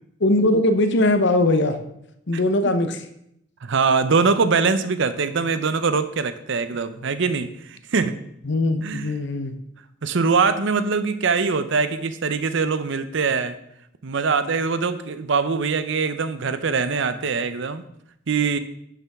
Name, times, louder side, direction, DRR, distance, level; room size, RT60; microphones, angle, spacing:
voice 1, 0.2-1.8 2.3-3.0 8.4-9.6, left 1 dB, 60° left, 8 dB, 0.9 m, -20 dB
voice 2, 3.6-8.2 8.8-9.1 10.0-13.6 14.0-17.9 18.3-18.6, right 4 dB, 65° right, 12 dB, 0.7 m, -22 dB
10.5 x 6.9 x 3.6 m, 0.76 s
head